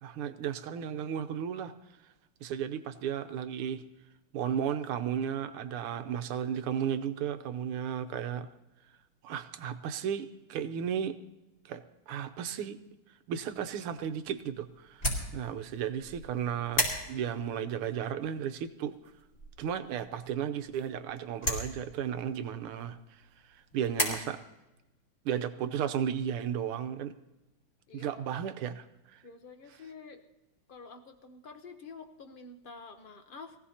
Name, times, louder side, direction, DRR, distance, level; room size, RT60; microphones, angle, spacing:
voice 1, 0.0-1.7 2.4-3.8 4.3-8.5 9.2-11.2 11.6-12.8 13.3-18.9 19.6-23.0 23.5-24.4 25.2-27.1 27.9-29.2, right 8 dB, 85° right, 10 dB, 1.7 m, -34 dB
sound 1, 13.5-24.1, equal, 30° left, 4.4 m, -38 dB
voice 2, 27.9-28.2 29.2-30.2 30.7-33.6, left 4 dB, 65° left, 6 dB, 0.5 m, -48 dB
23.0 x 16.0 x 2.8 m, 0.99 s
omnidirectional pair, 2.4 m